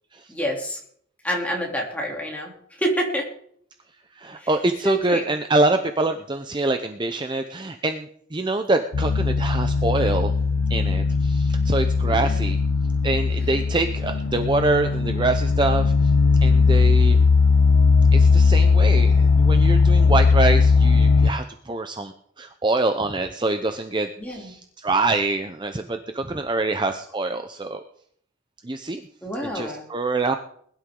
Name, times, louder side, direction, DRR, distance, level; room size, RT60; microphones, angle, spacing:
voice 1, 0.3-0.8 1.2-2.5 2.8-3.3 4.4-4.5 4.8-5.3 12.0-12.5 24.2-24.5 29.2-29.8, equal, 10° left, -1 dB, 3.1 m, -28 dB
voice 2, 4.2-10.3 10.7-12.6 13.0-15.9 16.4-17.3 18.1-22.1 22.4-27.8 28.6-29.0 29.5-30.3, right 2 dB, 25° right, 7 dB, 0.6 m, -25 dB
sound 1, 8.9-21.3, left 4 dB, 85° left, 0.5 m, -18 dB
21.0 x 11.5 x 3.8 m, 0.63 s
head